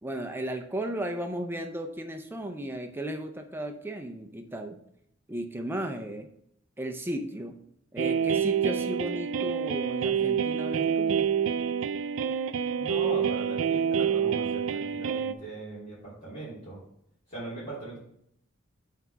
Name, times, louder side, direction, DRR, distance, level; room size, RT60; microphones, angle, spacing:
voice 1, 0.0-4.8 5.3-6.3 6.8-7.6 7.9-11.3, right 1 dB, 10° right, 5 dB, 0.5 m, -35 dB
sound 1, 8.0-15.3, right 7 dB, 75° right, 0.4 m, -27 dB
voice 2, 12.8-16.8 17.3-18.0, right 2 dB, 35° left, -10 dB, 3.1 m, -39 dB
5.8 x 4.6 x 6.0 m, 0.73 s
head